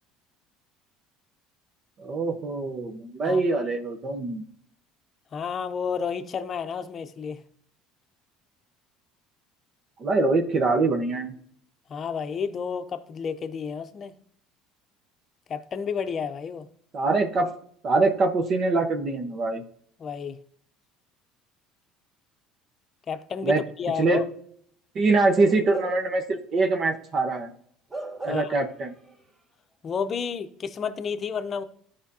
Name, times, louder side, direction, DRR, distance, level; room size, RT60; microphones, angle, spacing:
voice 1, 2.0-4.4 10.0-11.3 16.9-17.5 17.8-19.6 23.4-23.6 24.0-24.2 24.9-27.5 28.2-28.9, right 3 dB, 45° right, 1.0 m, -24 dB
voice 2, 5.3-7.4 11.9-14.1 15.5-16.7 20.0-20.4 23.1-24.3 28.3-28.5 29.8-31.6, left 6 dB, 40° left, 0.7 m, -31 dB
Bark / Livestock farm animals working animals, 25.3-26.2 26.6-26.8 27.9-28.7 29.0-29.2, right 3 dB, 30° right, 2.4 m, -36 dB
12.5 x 5.1 x 2.8 m
supercardioid pair, 90°, 0 cm